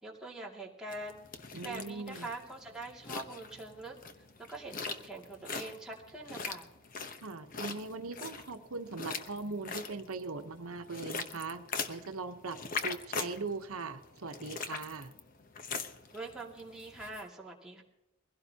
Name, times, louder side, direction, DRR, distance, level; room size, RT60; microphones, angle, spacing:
voice 1, 0.0-1.2 1.6-4.0 4.5-6.7 16.1-17.8, right 2 dB, 5° right, -4 dB, 2.4 m, -44 dB
sound 1, 0.9-17.2, left 5 dB, 40° left, 0.9 m, -42 dB
voice 2, 1.5-2.3 7.2-15.1, right 3 dB, 90° right, 6 dB, 1.0 m, -40 dB
22.0 x 16.5 x 2.9 m, 0.96 s
head